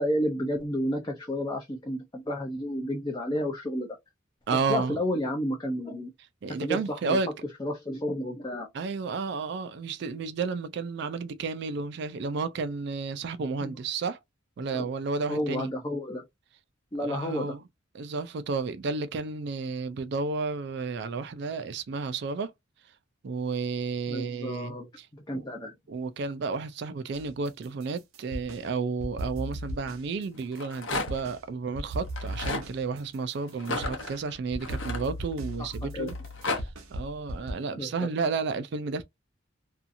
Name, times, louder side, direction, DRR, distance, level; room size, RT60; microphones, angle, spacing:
voice 1, 0.0-3.9 4.7-6.1 6.6-7.2 7.6-8.7 13.6-13.8 14.7-14.9 15.3-16.3 16.9-17.6 24.1-24.9 25.1-25.7 35.8-36.1 37.8-38.1, equal, 20° left, 0.4 m, -31 dB
voice 2, 4.5-5.0 6.4-7.3 8.7-14.2 14.6-15.7 17.0-17.6 17.9-22.5 23.2-25.1 25.3-25.5 25.9-36.2 36.5-39.0, right 4 dB, 55° right, 0.3 m, -32 dB
sound 1, 27.1-28.6 29.0-31.4 31.7-37.5, right 1 dB, 85° right, 0.6 m, -37 dB
Rattle, 30.4-31.3 32.1-32.7 33.6-35.5 36.1-36.6, left 3 dB, 65° left, 0.7 m, -33 dB
2.7 x 2.4 x 2.5 m
head